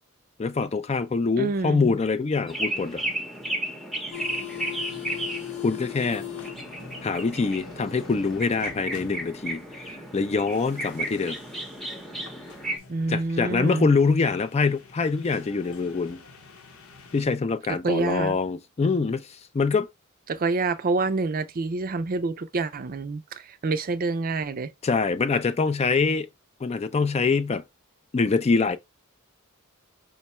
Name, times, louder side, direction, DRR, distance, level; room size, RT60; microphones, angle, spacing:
voice 1, 0.4-3.0 5.6-6.2 7.0-11.4 13.1-16.2 17.1-19.9 24.8-26.3 26.6-27.6 28.1-28.8, left 4 dB, 30° left, 0.4 m, -24 dB
voice 2, 1.4-1.9 12.9-13.9 17.8-18.4 20.3-24.7, right 3 dB, 40° right, 0.5 m, -27 dB
sound 1, 2.5-12.8, right 1 dB, ahead, 0.7 m, -34 dB
sound 2, 4.1-17.2, left 8 dB, 75° left, 1.0 m, -42 dB
5.2 x 2.2 x 4.2 m
head